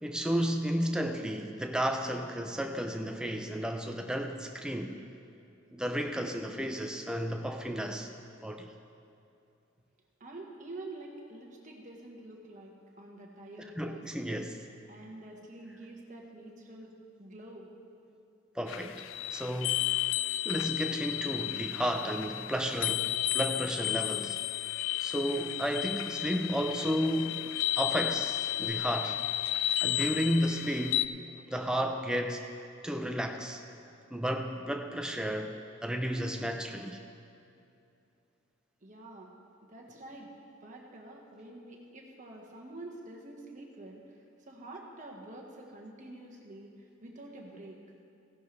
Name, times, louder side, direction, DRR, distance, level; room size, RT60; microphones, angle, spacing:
voice 1, 0.0-4.9 5.7-8.1 8.4-8.7 13.8-14.6 18.6-19.0 19.3-19.9 20.4-24.4 25.0-27.5 27.8-29.2 29.8-31.1 31.5-32.4 32.8-33.6 34.1-35.5 35.8-37.0, equal, 5° right, 4 dB, 0.6 m, -32 dB
voice 2, 10.2-14.5 14.9-16.9 17.2-17.7 38.8-39.3 39.6-40.3 40.6-47.8, right 2 dB, 35° right, 0 dB, 1.4 m, -47 dB
sound 1, 18.7-31.1, left 13 dB, 65° left, 0.3 m, -33 dB
16.0 x 11.0 x 3.4 m, 2.6 s
head